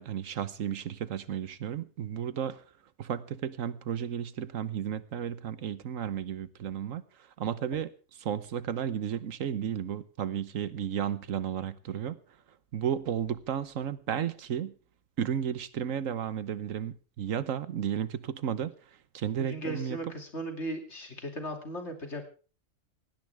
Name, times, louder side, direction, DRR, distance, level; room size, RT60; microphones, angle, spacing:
voice 1, 0.0-2.6 3.0-7.0 7.4-7.9 8.2-12.2 12.7-14.7 15.2-18.7 19.1-20.0, right 9 dB, 80° right, 1.3 m, -33 dB
voice 2, 19.4-22.2, right 1 dB, 60° left, 3.0 m, -37 dB
18.5 x 17.0 x 3.5 m
omnidirectional pair, 1.4 m